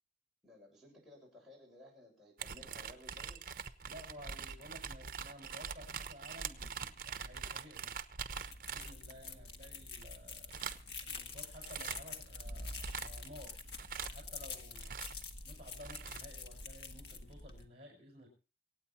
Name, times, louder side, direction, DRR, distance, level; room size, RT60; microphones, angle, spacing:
voice 1, 0.4-3.4, left 1 dB, ahead, -5 dB, 7.2 m, -57 dB
sound 1, 2.4-9.3 10.0-10.1 10.5-11.0 11.4-12.1 12.5-15.3 15.7-16.2, right 6 dB, 50° right, 1.0 m, -43 dB
voice 2, 3.8-7.9 8.6-10.5 11.0-13.6 14.1-15.0 15.4-18.3, equal, 35° right, 2 dB, 5.8 m, -54 dB
sound 2, 8.3-17.7, left 3 dB, 75° left, 1.5 m, -47 dB
25.5 x 9.0 x 4.3 m, 0.35 s
head